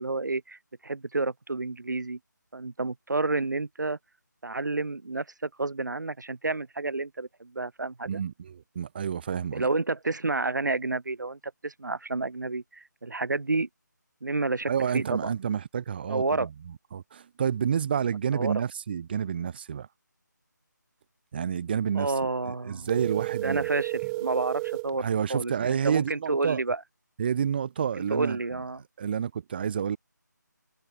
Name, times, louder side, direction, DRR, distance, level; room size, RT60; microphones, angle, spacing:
voice 1, 0.0-2.2 2.5-4.0 4.4-8.2 9.5-13.7 14.2-15.4 16.1-16.5 18.3-18.6 21.9-22.9 23.4-26.8 28.1-28.8, right 3 dB, 70° right, 1.5 m, -30 dB
voice 2, 8.1-9.7 14.7-19.9 21.3-22.1 22.5-23.7 25.0-26.6 27.2-28.4 29.0-30.0, right 8 dB, 30° right, 3.2 m, -29 dB
sound 1, 22.8-24.9, right 26 dB, 15° right, 2.1 m, -32 dB
figure-of-eight pair, 160°, 10 cm